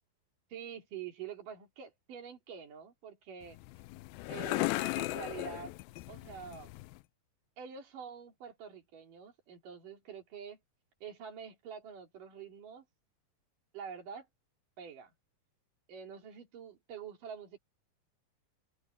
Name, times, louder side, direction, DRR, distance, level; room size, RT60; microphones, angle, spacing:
voice 1, 0.5-3.6 4.3-5.7 6.1-6.7 7.6-10.6 11.0-12.9 13.7-14.3 14.8-15.1 15.9-17.6, right 7 dB, 50° right, 4.6 m, -46 dB
sound 1, 3.4-7.0, left 20 dB, 90° left, 2.1 m, -37 dB
open air
omnidirectional pair, 5.0 m